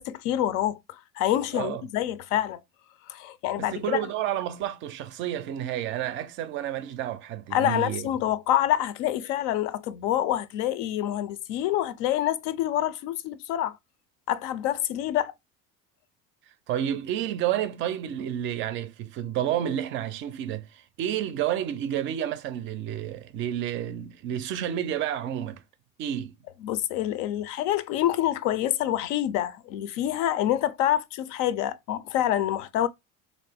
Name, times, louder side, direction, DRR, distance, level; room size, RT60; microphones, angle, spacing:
voice 1, 0.0-2.6 3.1-4.0 7.5-13.8 14.3-15.3 26.6-32.9, left 12 dB, 80° left, 0.5 m, -27 dB
voice 2, 3.6-8.1 16.7-25.6 26.0-26.3, right 11 dB, 40° right, 0.4 m, -30 dB
3.8 x 2.5 x 3.3 m
cardioid pair, 175°, 30 cm